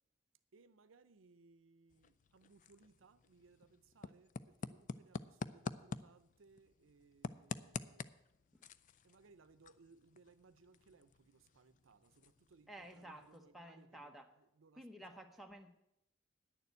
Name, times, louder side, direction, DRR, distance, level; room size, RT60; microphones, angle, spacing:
voice 1, 0.5-8.1 9.0-15.2, right 4 dB, 80° right, 0.6 m, -66 dB
sound 1, 1.9-13.6, left 4 dB, 40° left, 0.4 m, -49 dB
voice 2, 12.7-14.3 14.7-15.7, right 1 dB, ahead, 0.9 m, -53 dB
10.0 x 6.9 x 8.0 m
head